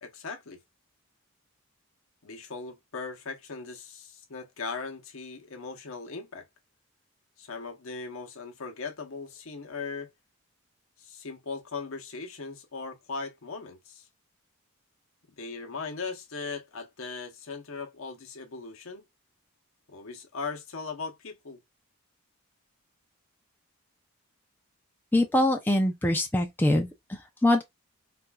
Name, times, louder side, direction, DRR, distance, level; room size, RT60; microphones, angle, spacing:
voice 1, 0.0-0.6 2.2-6.5 7.4-10.1 11.0-14.1 15.4-19.0 19.9-21.6, left 4 dB, 65° left, 0.8 m, -39 dB
voice 2, 25.1-27.6, left 1 dB, 10° left, 0.4 m, -24 dB
4.2 x 2.4 x 2.2 m
head